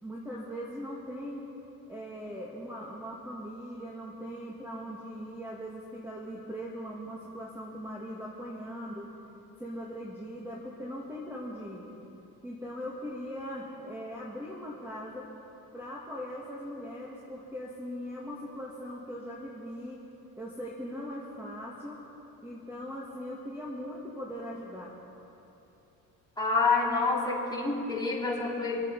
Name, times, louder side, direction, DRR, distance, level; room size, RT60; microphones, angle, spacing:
voice 1, 0.0-1.4 1.9-9.1 9.6-11.9 12.4-15.3 15.7-20.0 20.4-22.0 22.4-24.9, equal, 5° right, -4 dB, 1.9 m, -40 dB
voice 2, 26.4-28.8, left 3 dB, 10° left, -5 dB, 3.7 m, -27 dB
26.0 x 9.1 x 5.3 m, 3.0 s
cardioid pair, 110°, 38 cm